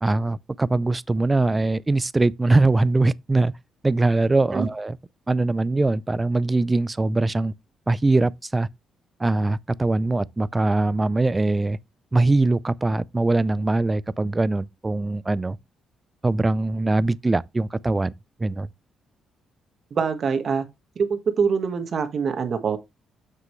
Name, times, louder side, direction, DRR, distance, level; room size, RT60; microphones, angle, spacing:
voice 1, 0.0-3.5 3.8-5.0 5.3-7.5 7.9-8.7 9.2-11.8 12.1-15.6 16.2-18.1 18.4-18.7, right 2 dB, 20° right, 0.4 m, -22 dB
voice 2, 19.9-20.6 20.9-22.8, right 6 dB, 50° right, 1.4 m, -24 dB
7.6 x 6.3 x 3.1 m
cardioid pair, 90°, 0 cm